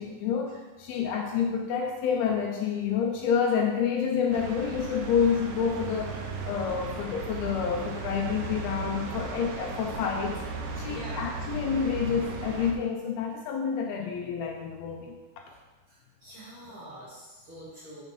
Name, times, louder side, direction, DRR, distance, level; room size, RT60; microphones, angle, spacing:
voice 1, 0.0-6.2 6.4-10.4 10.8-15.2 16.8-16.9, left 7 dB, 80° left, 1 dB, 2.4 m, -28 dB
sound 1, 4.3-12.7, right 3 dB, 85° right, 1.7 m, -36 dB
voice 2, 10.9-11.2 16.2-18.0, right 1 dB, 40° right, -8 dB, 2.4 m, -44 dB
6.1 x 5.6 x 5.4 m, 1.2 s
omnidirectional pair, 4.6 m